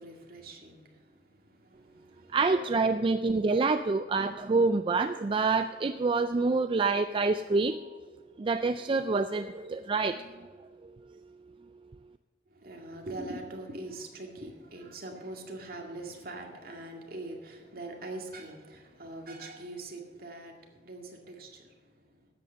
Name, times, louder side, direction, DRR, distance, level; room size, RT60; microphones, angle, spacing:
voice 1, 0.0-2.4 12.5-22.3, right 2 dB, 55° right, 1 dB, 2.1 m, -43 dB
voice 2, 2.3-7.8 8.4-10.5 10.8-10.9, right 3 dB, 30° right, 9 dB, 0.3 m, -27 dB
12.5 x 8.6 x 6.5 m, 1.5 s
head